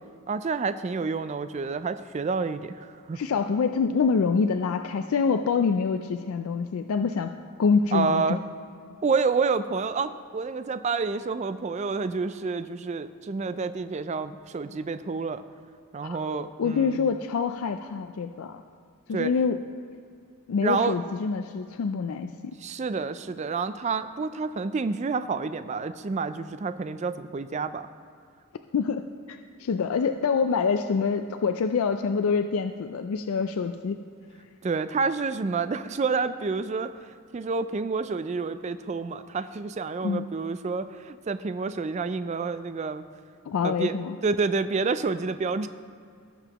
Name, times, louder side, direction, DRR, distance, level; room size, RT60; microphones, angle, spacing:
voice 1, 0.3-3.2 7.9-8.4 9.0-15.4 15.9-17.0 19.1-19.3 20.6-21.0 22.6-27.9 34.6-36.9 37.3-43.0 43.6-45.7, right 4 dB, 30° right, 12 dB, 0.3 m, -29 dB
voice 2, 3.1-7.3 7.6-8.4 16.0-16.2 16.6-18.6 19.1-19.6 20.5-22.5 28.7-34.0 40.0-40.3 43.5-44.2, left 5 dB, 75° left, 7 dB, 0.4 m, -26 dB
18.0 x 7.0 x 3.0 m, 2.3 s
head